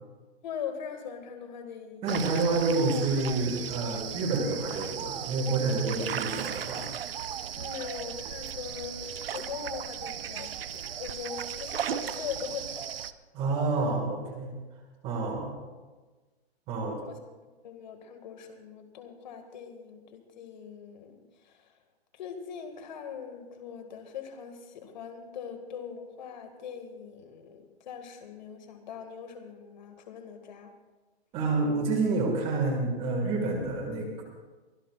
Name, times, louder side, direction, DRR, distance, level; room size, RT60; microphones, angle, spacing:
voice 1, 0.4-2.1 7.5-12.9 16.7-17.2 17.6-21.8 22.1-30.7, left 7 dB, 40° left, 5 dB, 2.1 m, -41 dB
voice 2, 2.0-6.9 13.3-14.5 15.0-15.5 16.7-17.0 31.3-34.2, right 3 dB, 15° right, 2 dB, 2.0 m, -28 dB
sound 1, 2.1-13.1, right 9 dB, 60° right, 0.7 m, -36 dB
23.5 x 17.5 x 2.5 m, 1.3 s
hypercardioid pair, 160°, 33 cm